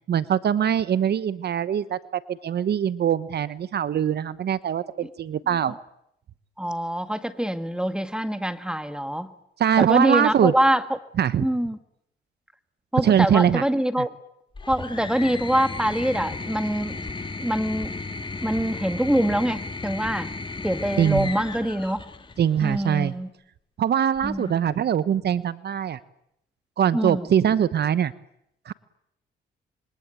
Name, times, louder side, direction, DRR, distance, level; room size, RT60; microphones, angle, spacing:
voice 1, 0.1-5.7 9.6-10.5 11.2-11.5 13.0-13.6 21.0-21.3 22.4-23.1 23.8-26.0 26.8-28.1 28.7-28.8, right 9 dB, 55° right, 15 dB, 1.0 m, -22 dB
voice 2, 6.6-9.3 9.8-10.8 11.4-11.8 12.9-14.1 14.7-17.0 17.4-17.9 18.4-20.3 20.6-22.0 22.6-23.3 24.2-24.6 26.9-27.3, equal, 5° right, 10 dB, 1.7 m, -24 dB
sound 1, 14.5-23.0 24.2-24.8, left 3 dB, 25° left, 2.1 m, -35 dB
26.5 x 23.0 x 9.0 m, 0.78 s
cardioid pair, 90°, 20 cm